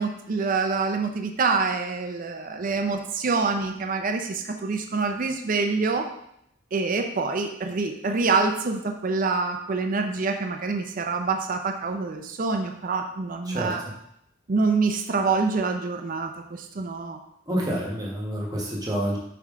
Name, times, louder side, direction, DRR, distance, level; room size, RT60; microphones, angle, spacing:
voice 1, 0.0-6.1 6.7-13.8 14.5-17.2, right 4 dB, 40° right, 5 dB, 0.5 m, -26 dB
voice 2, 17.5-19.2, right 1 dB, 20° right, -3 dB, 1.2 m, -28 dB
5.7 x 4.6 x 3.6 m, 0.76 s
head